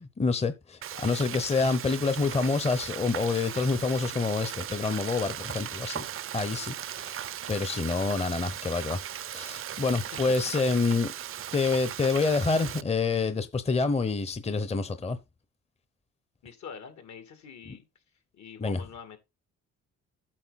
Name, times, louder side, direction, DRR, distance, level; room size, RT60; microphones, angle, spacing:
voice 1, 0.0-6.0 6.3-9.0 9.3-11.1 11.5-15.2 18.6-18.8, left 4 dB, 20° left, 0.8 m, -27 dB
Frying (food), 0.8-12.8, right 10 dB, 45° right, 0.5 m, -38 dB
voice 2, 0.9-1.2 9.9-10.0 10.4-10.5 16.4-17.9 18.3-19.2, left 6 dB, 65° left, 2.6 m, -45 dB
8.8 x 6.8 x 4.2 m
cardioid pair, 90°, 30 cm